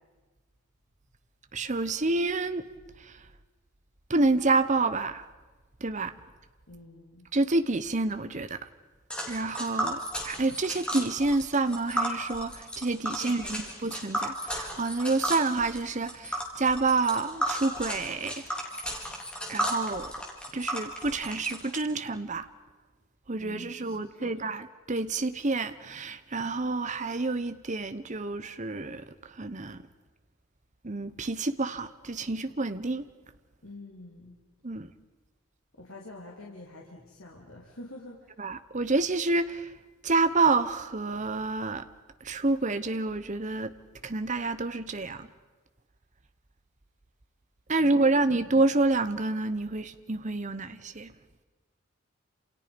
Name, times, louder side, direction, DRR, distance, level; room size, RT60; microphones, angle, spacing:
voice 1, 1.5-2.7 3.0-3.1 4.1-5.2 5.8-6.1 7.3-8.7 9.3-18.3 19.5-20.1 20.5-22.5 23.3-29.8 30.8-33.0 34.6-34.9 38.4-39.7 40.0-41.8 42.2-43.7 44.0-45.3 47.7-51.1, right 3 dB, 35° right, 1.0 m, -28 dB
voice 2, 6.7-7.3 13.2-13.7 23.4-24.3 33.6-34.4 35.7-38.4 47.8-48.2, left 2 dB, 75° left, 3.2 m, -47 dB
Tick, 9.1-21.8, equal, 5° left, 4.1 m, -34 dB
29.5 x 28.5 x 5.3 m
head